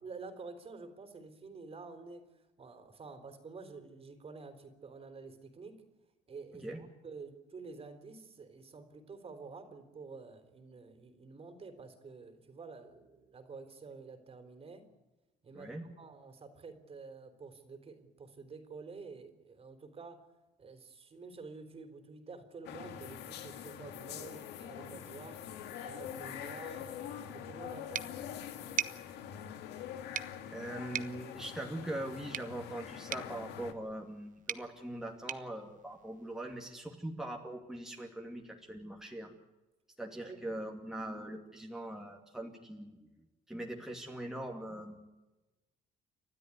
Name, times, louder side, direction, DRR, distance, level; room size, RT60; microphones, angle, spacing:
voice 1, 0.0-5.8 6.3-14.9 15.4-15.7 16.0-20.2 20.6-25.4 25.8-28.0 40.2-40.5, right 4 dB, 35° right, 8 dB, 3.6 m, -49 dB
voice 2, 15.5-15.9 30.5-39.3 40.0-43.0 43.5-45.0, right 1 dB, 5° right, 0 dB, 2.5 m, -42 dB
sound 1, 22.6-33.7, left 9 dB, 85° left, 2.0 m, -44 dB
sound 2, 27.9-36.6, right 9 dB, 50° right, 1.0 m, -43 dB
30.0 x 13.0 x 9.8 m, 1.1 s
cardioid pair, 110°, 17 cm